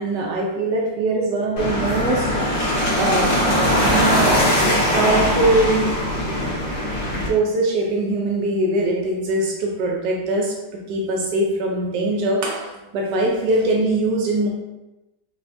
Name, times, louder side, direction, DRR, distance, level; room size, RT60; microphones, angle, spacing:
voice 1, 0.0-2.4 3.0-3.4 3.8-4.4 4.9-5.9 7.1-14.5, right 2 dB, 90° right, -1 dB, 1.3 m, -22 dB
sound 1, 1.6-7.3, equal, 75° left, 1.7 m, -20 dB
5.5 x 2.2 x 2.6 m, 0.98 s
omnidirectional pair, 1.8 m